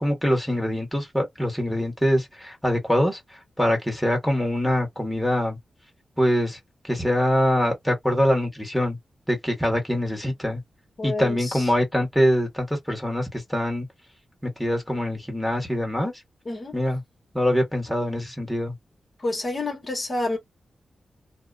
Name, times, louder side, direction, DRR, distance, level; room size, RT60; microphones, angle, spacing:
voice 1, 0.0-3.2 3.6-5.6 6.2-6.6 6.9-9.0 9.3-10.6 11.0-13.9 14.4-16.1 16.7-17.0 17.3-18.7, equal, ahead, 1.6 m, -24 dB
voice 2, 11.0-11.7 16.4-16.7 19.2-20.4, left 2 dB, 40° left, 1.3 m, -29 dB
2.8 x 2.1 x 2.6 m
cardioid pair, 70°, 0 cm